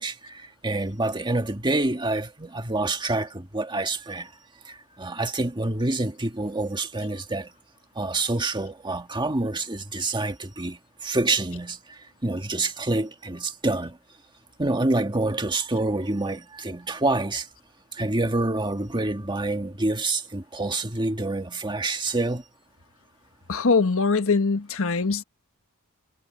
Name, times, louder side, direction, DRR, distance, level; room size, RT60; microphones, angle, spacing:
voice 1, 0.0-4.3 4.7-7.5 8.0-14.0 14.6-17.5 17.9-22.4, right 2 dB, 20° right, 1.7 m, -27 dB
voice 2, 23.5-25.2, left 4 dB, 65° left, 1.3 m, -22 dB
head